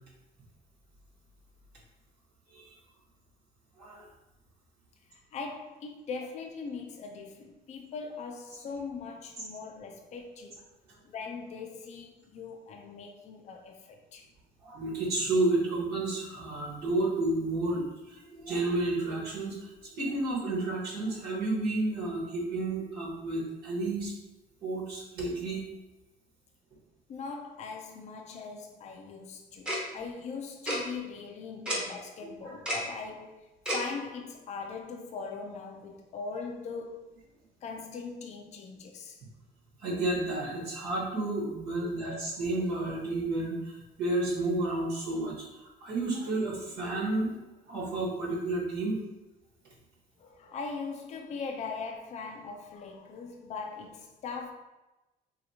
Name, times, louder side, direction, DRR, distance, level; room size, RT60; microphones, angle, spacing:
voice 1, 5.1-10.6 11.0-14.2 27.1-37.1 37.6-39.2 50.2-54.5, left 4 dB, 45° left, 0.5 m, -40 dB
voice 2, 14.6-24.1 24.6-25.6 32.4-32.5 39.8-45.3 45.8-47.3 47.7-49.0, right 2 dB, 70° right, 1.2 m, -31 dB
Tick-tock, 29.7-29.8 30.7-30.8 31.7-31.8 32.7-32.8 33.7-33.8, equal, 5° right, 0.8 m, -29 dB
3.1 x 2.9 x 2.7 m
cardioid pair, 110°, 17 cm